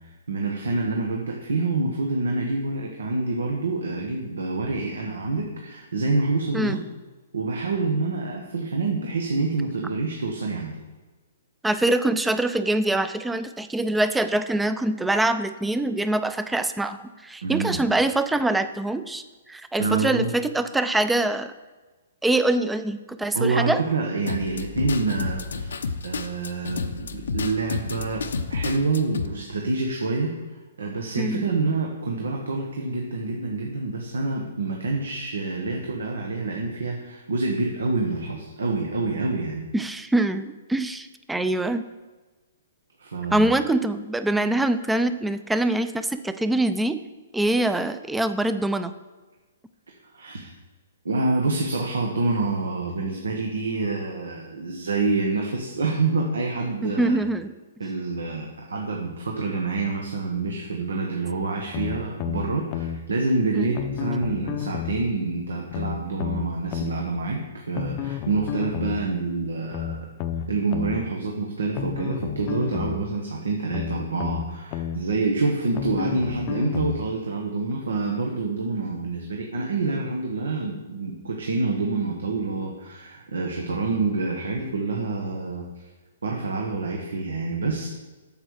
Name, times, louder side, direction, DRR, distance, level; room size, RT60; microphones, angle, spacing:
voice 1, 0.0-6.8 7.3-10.7 17.4-17.8 19.8-20.3 23.3-28.2 28.5-30.4 30.8-39.6 43.0-43.5 49.9-50.5 51.0-57.2 57.8-70.0 70.5-85.6 86.2-87.9, right 3 dB, 85° right, 0 dB, 1.4 m, -27 dB
voice 2, 11.6-21.5 22.2-23.8 31.2-31.5 39.7-41.8 43.3-47.0 47.3-48.9 56.8-57.5 63.5-63.8, right 2 dB, 5° right, 11 dB, 0.5 m, -24 dB
sound 1, 24.3-29.3, left 4 dB, 80° left, 0.7 m, -30 dB
sound 2, 61.7-63.0 63.7-65.0 65.7-67.0 67.7-69.0 69.7-71.0 71.7-73.0 73.7-75.0 75.7-77.0 77.7-77.8, left 9 dB, 35° left, 0.6 m, -31 dB
8.8 x 6.9 x 4.8 m, 1.3 s
hypercardioid pair, 140°, 0 cm